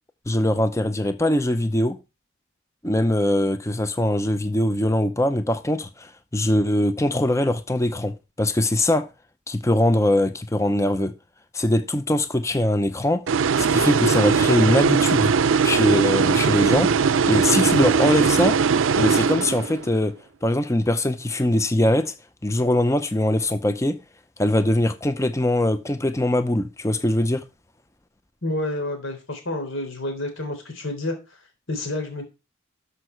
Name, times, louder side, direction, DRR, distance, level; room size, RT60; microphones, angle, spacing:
voice 1, 0.3-2.0 2.8-9.1 9.5-11.1 11.5-13.2 13.6-15.3 15.6-16.9 17.2-18.6 19.0-20.1 20.4-22.1 22.4-24.0 24.4-27.4, left 1 dB, 15° left, 0.6 m, -22 dB
sound 1, 13.3-19.9, right 5 dB, 75° right, 0.5 m, -20 dB
voice 2, 28.4-31.2 31.7-32.2, left 1 dB, 80° left, 3.6 m, -29 dB
12.5 x 5.6 x 4.5 m
head